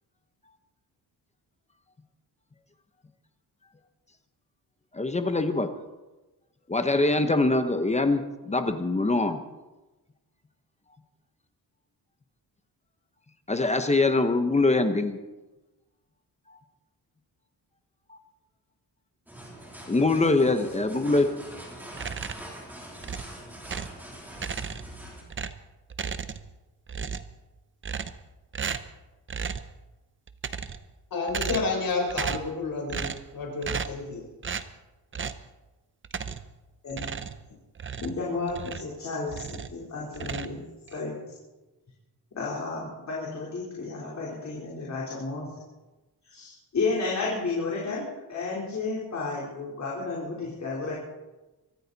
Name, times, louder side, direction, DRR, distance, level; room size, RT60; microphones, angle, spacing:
voice 1, 4.9-5.7 6.7-8.2 8.5-9.4 13.5-15.2 18.1-18.2 19.9-21.3, left 2 dB, 15° left, 8 dB, 0.9 m, -23 dB
sound 1, 19.3-25.2, right 1 dB, 5° right, 3.2 m, -43 dB
sound 2, 21.9-22.5 23.0-24.0 24.3-25.0 25.3-26.6 26.9-27.4 27.8-28.3 28.5-29.0 29.3-29.7 30.3-30.9 31.3-31.8 32.1-32.5 32.9-33.3 33.6-34.0 34.4-34.7 35.1-35.5 36.0-36.5 36.9-39.0 39.3-39.8 40.1-41.0, right 6 dB, 30° right, 0.7 m, -35 dB
voice 2, 31.1-33.1 33.3-34.2, left 3 dB, 60° left, 2 dB, 3.8 m, -30 dB
voice 3, 38.0-40.6 40.9-41.1 42.4-45.5 46.2-50.9, left 3 dB, 45° left, -5 dB, 3.7 m, -32 dB
23.5 x 14.0 x 4.1 m, 1.1 s
wide cardioid pair, 180°, 40 cm